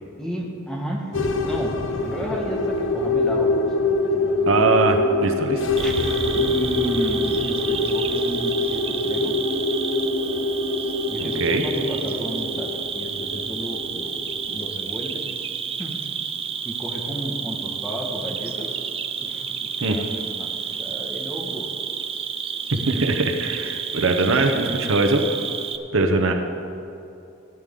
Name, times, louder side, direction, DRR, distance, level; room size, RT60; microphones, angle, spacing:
voice 1, 0.2-4.5 5.8-5.9 6.3-9.3 11.1-15.2 15.8-16.0 16.6-18.7 19.2-21.7, equal, 5° left, -2 dB, 1.3 m, -32 dB
sound 1, 1.1-14.7, left 2 dB, 60° left, 0.7 m, -25 dB
voice 2, 4.5-5.6 11.2-11.6 19.8-20.0 22.7-25.2 25.9-26.3, right 3 dB, 70° right, 4 dB, 0.9 m, -21 dB
Cricket, 5.8-25.8, right 7 dB, 25° right, 0.4 m, -30 dB
14.5 x 10.0 x 3.7 m, 2.6 s
head